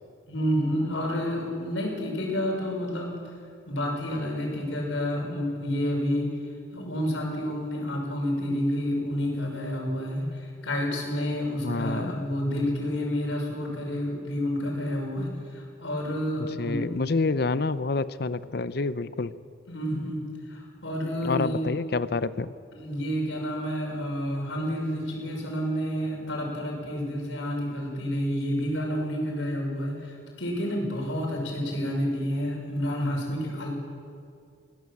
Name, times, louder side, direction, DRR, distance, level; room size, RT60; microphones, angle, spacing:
voice 1, 0.3-3.2 3.7-6.3 6.7-16.9 19.7-20.2 20.5-21.7 22.7-33.7, equal, 85° left, 0 dB, 6.2 m, -29 dB
voice 2, 11.6-12.3 16.4-19.3 21.2-22.5, left 3 dB, 55° left, 14 dB, 0.6 m, -28 dB
22.5 x 16.0 x 7.4 m, 2.3 s
head